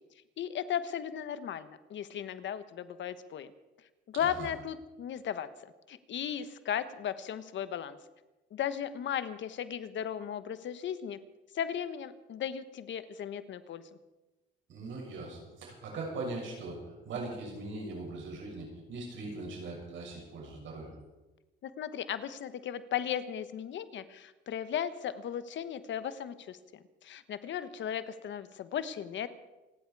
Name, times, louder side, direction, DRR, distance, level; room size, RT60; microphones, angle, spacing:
voice 1, 0.4-3.5 4.1-8.0 8.5-11.2 11.5-13.9 21.6-29.3, left 9 dB, 70° left, 12 dB, 1.1 m, -36 dB
voice 2, 4.1-4.5 14.7-21.0, right 2 dB, 75° right, -1 dB, 6.9 m, -40 dB
27.5 x 10.5 x 4.8 m, 1.1 s
cardioid pair, 90°, 20 cm